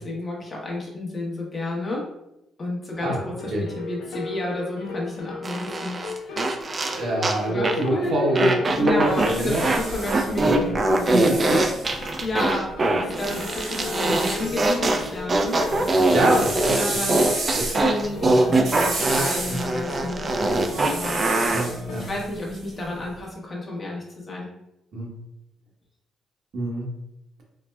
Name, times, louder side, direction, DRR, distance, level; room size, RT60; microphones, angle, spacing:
voice 1, 0.0-2.1 2.6-6.4 7.5-11.6 12.2-16.2 16.5-17.4 17.7-21.2 22.0-24.5, left 2 dB, 40° left, -3 dB, 0.9 m, -31 dB
sound 1, 2.9-22.1, left 4 dB, 85° left, 0.4 m, -38 dB
sound 2, 5.4-7.4 7.6-7.9 8.3-9.8 10.1-21.6, right 2 dB, 35° right, 0.4 m, -23 dB
voice 2, 6.9-9.7 10.4-10.6 11.1-11.6 13.4-13.5 14.0-14.1 16.1-17.0 17.5-17.7 19.5-19.6 21.5-22.0 24.9-25.1 26.5-26.9, right 1 dB, 65° right, -2 dB, 0.9 m, -25 dB
sound 3, 8.9-12.5 13.1-14.8 15.1-23.1, right 2 dB, 90° right, 1.4 m, -33 dB
4.1 x 2.1 x 2.2 m, 0.86 s
cardioid pair, 90°, 0 cm